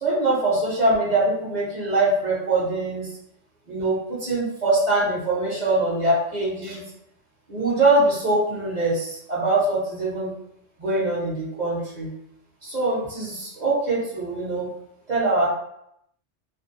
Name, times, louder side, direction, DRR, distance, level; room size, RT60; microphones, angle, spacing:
voice 1, 0.0-3.1 3.7-6.8 7.5-10.3 10.8-12.1 12.6-14.7 15.1-15.5, right 2 dB, 40° right, -7 dB, 0.9 m, -23 dB
2.5 x 2.2 x 2.6 m, 0.76 s
omnidirectional pair, 1.3 m